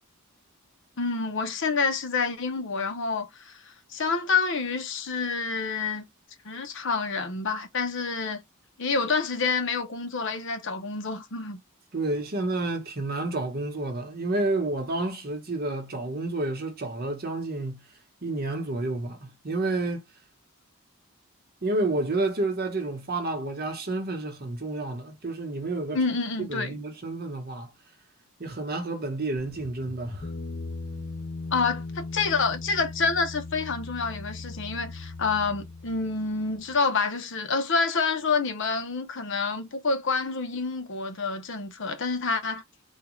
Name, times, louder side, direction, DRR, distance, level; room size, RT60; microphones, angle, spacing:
voice 1, 1.0-6.0 6.4-8.4 8.8-11.6 25.9-26.8 31.5-42.6, left 4 dB, 55° left, 0.8 m, -28 dB
voice 2, 11.9-17.8 18.2-20.0 21.6-26.0 26.4-27.7 28.4-30.3, right 2 dB, 45° right, 1.0 m, -30 dB
sound 1, 29.4-36.8, left 3 dB, 30° left, 0.5 m, -38 dB
3.6 x 2.3 x 3.0 m
head